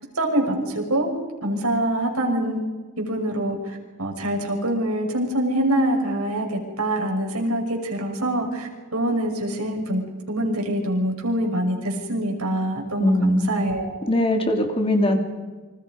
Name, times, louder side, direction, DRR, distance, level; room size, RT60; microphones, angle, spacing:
voice 1, 0.1-1.1 1.4-2.6 3.0-10.0 10.3-14.0, right 1 dB, 85° right, 2 dB, 6.2 m, -25 dB
voice 2, 13.0-13.5 14.1-15.2, left 1 dB, 25° left, 3 dB, 3.2 m, -21 dB
29.0 x 26.0 x 5.3 m, 1.3 s
head